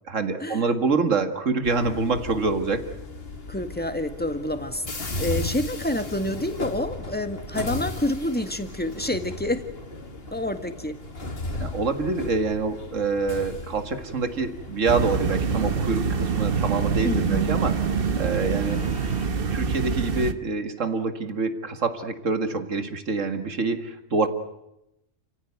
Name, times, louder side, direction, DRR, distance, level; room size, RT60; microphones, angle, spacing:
voice 1, 0.1-2.9 11.6-17.7 18.2-18.8 19.5-24.3, right 4 dB, 75° right, 8 dB, 2.3 m, -26 dB
sound 1, 1.6-19.3, left 2 dB, 50° left, 2.5 m, -36 dB
voice 2, 3.5-9.7 10.3-11.0 17.0-17.5, left 1 dB, 5° left, 7 dB, 1.7 m, -28 dB
sound 2, 14.8-20.3, right 5 dB, 50° right, 1.3 m, -25 dB
30.0 x 16.0 x 9.4 m, 0.89 s
omnidirectional pair, 1.3 m